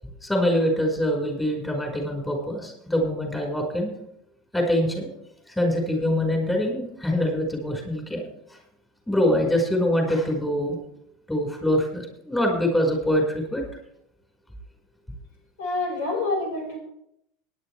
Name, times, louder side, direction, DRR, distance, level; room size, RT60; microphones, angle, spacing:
voice 1, 0.2-3.9 4.5-5.1 5.5-8.2 9.1-10.8 11.3-13.6, left 1 dB, 10° left, 2 dB, 5.0 m, -24 dB
voice 2, 15.6-16.8, left 2 dB, 80° left, 1 dB, 5.3 m, -27 dB
19.0 x 10.5 x 3.4 m, 0.75 s
hypercardioid pair, 95°, 0 cm